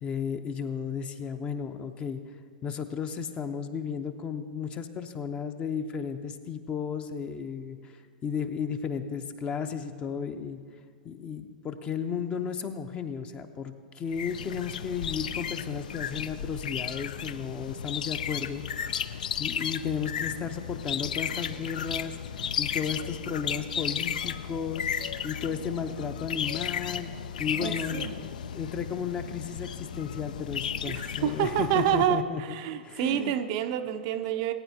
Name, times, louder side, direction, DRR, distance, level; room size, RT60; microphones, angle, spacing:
voice 1, 0.0-2.2 2.6-7.9 8.2-10.6 11.0-18.6 19.0-22.2 22.6-24.9 25.2-32.4 32.8-33.4, left 6 dB, 25° left, 8 dB, 0.7 m, -34 dB
sound 1, 14.1-32.1, left 8 dB, 60° left, 0.4 m, -34 dB
voice 2, 27.5-28.2 30.9-34.5, right 10 dB, 45° right, 8 dB, 0.5 m, -28 dB
19.5 x 9.3 x 2.8 m, 2.1 s
figure-of-eight pair, 105°, 5 cm